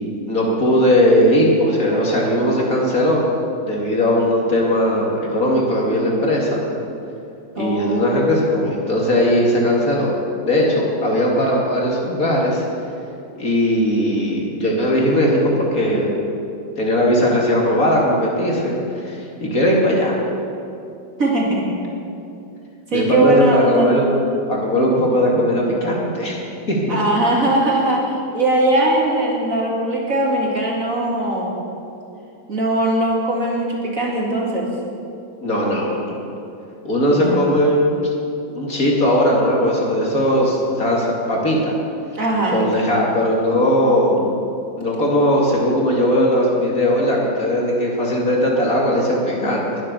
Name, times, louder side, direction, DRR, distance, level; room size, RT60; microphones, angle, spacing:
voice 1, 0.3-3.2 3.6-6.6 7.6-10.1 10.4-12.6 13.3-16.1 16.8-20.2 22.9-24.1 24.5-26.4 26.7-27.0 35.4-36.2 36.8-38.0 38.5-41.8 42.5-44.2 44.8-49.8, equal, 45° left, -2 dB, 2.8 m, -18 dB
voice 2, 7.6-8.2 21.2-21.7 22.9-23.9 26.9-31.6 32.5-34.7 37.1-37.4 42.1-42.6, right 1 dB, 45° right, -2 dB, 2.7 m, -20 dB
21.0 x 7.8 x 6.9 m, 2.7 s
omnidirectional pair, 2.1 m